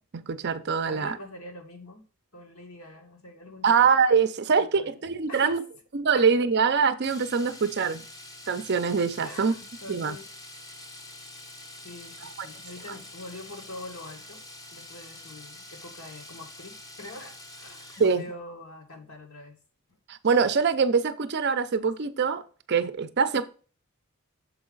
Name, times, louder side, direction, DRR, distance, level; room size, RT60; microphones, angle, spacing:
voice 1, 0.1-1.2 3.6-5.6 5.9-8.0 8.5-9.5 9.9-10.2 12.4-12.5 18.0-18.3 20.1-22.4 22.7-23.4, right 5 dB, 50° right, 11 dB, 0.5 m, -24 dB
voice 2, 0.8-2.0 2.3-3.9 4.6-5.0 5.3-5.6 6.1-6.2 9.2-10.3 11.8-14.4 14.7-19.6, left 2 dB, 70° left, 3 dB, 1.7 m, -44 dB
Domestic sounds home sounds, 7.0-18.3 20.4-20.5 20.8-20.9, left 2 dB, 15° left, 0.6 m, -46 dB
6.9 x 4.8 x 3.9 m, 0.38 s
head